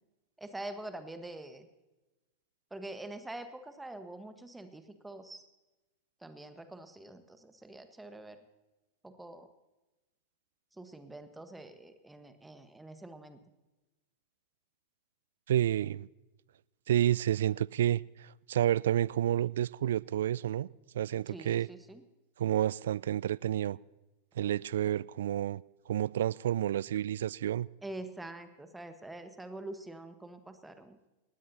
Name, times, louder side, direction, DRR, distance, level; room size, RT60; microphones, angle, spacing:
voice 1, 0.4-1.7 2.7-5.4 6.2-8.4 9.0-9.5 10.8-13.4 21.3-22.0 27.8-31.0, right 2 dB, 5° right, 1.4 m, -45 dB
voice 2, 15.5-16.1 16.9-20.7 20.9-21.7 22.4-23.8 24.4-27.7, right 11 dB, 60° right, 0.3 m, -30 dB
19.0 x 16.5 x 2.8 m
figure-of-eight pair, 90°, 0 cm